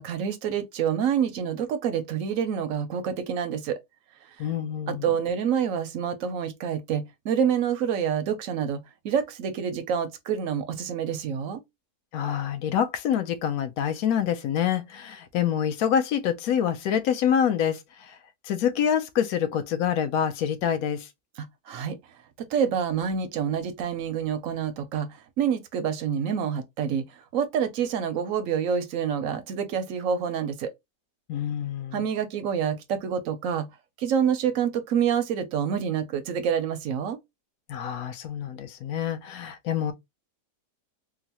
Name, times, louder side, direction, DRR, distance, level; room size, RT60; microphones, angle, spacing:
voice 1, 0.0-3.8 4.9-8.8 9.0-11.6 21.4-22.0 22.4-25.1 25.4-27.1 27.3-30.7 31.9-33.7 34.0-37.2, right 8 dB, 70° right, 0.8 m, -27 dB
voice 2, 4.4-5.1 12.1-17.8 18.1-18.2 18.5-21.1 31.3-32.1 37.7-39.9, left 9 dB, 70° left, 1.0 m, -26 dB
3.8 x 2.1 x 2.8 m
omnidirectional pair, 1.8 m